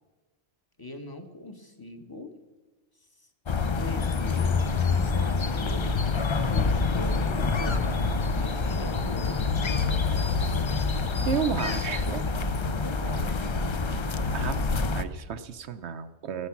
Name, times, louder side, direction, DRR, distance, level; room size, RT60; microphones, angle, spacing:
voice 1, 0.8-2.4 3.8-5.8 6.5-10.7 11.6-13.4, left 1 dB, 20° left, 6 dB, 1.1 m, -41 dB
sound 1, 3.5-15.0, left 4 dB, 45° left, 0.4 m, -26 dB
voice 2, 11.3-12.2 14.3-14.6 14.9-16.5, right 8 dB, 65° right, 11 dB, 0.9 m, -32 dB
15.5 x 9.7 x 5.9 m, 1.3 s
omnidirectional pair, 1.3 m